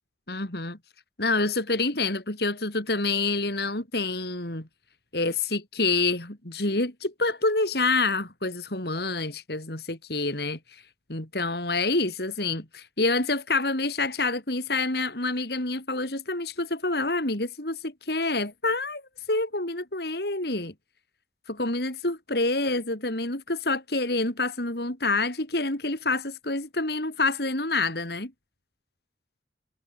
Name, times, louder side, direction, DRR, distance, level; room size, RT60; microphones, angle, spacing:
voice 1, 0.3-0.8 1.2-4.7 5.1-10.8 11.1-19.0 19.3-20.7 21.5-28.3, left 3 dB, 60° left, 3.4 m, -27 dB
head